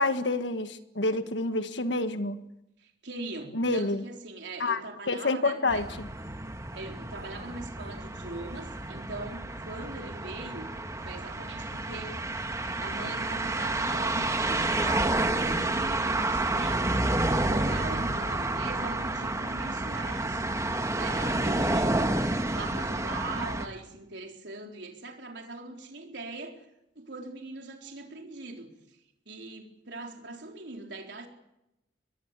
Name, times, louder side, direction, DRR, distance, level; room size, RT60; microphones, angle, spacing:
voice 1, 0.0-2.4 3.5-4.0 4.6-4.8 5.1-6.1, left 2 dB, 75° left, 9 dB, 1.6 m, -28 dB
voice 2, 2.8-5.9 6.7-10.7 11.0-12.2 12.8-22.1 22.5-26.6 27.0-29.0 29.3-31.3, right 2 dB, 70° right, 2 dB, 4.1 m, -41 dB
sound 1, 5.7-23.7, right 2 dB, 20° right, 1.6 m, -30 dB
24.5 x 21.0 x 8.3 m, 0.89 s
head